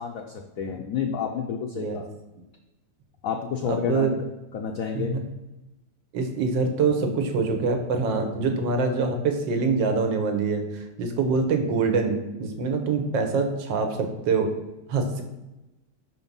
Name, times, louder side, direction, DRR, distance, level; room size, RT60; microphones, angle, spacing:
voice 1, 0.0-2.1 3.2-4.2 4.5-5.2, left 7 dB, 70° left, 3 dB, 0.8 m, -30 dB
voice 2, 3.7-4.1 4.9-5.2 6.1-14.5 14.9-15.2, right 4 dB, 80° right, 5 dB, 1.6 m, -25 dB
5.9 x 4.3 x 5.3 m, 0.99 s
omnidirectional pair, 2.0 m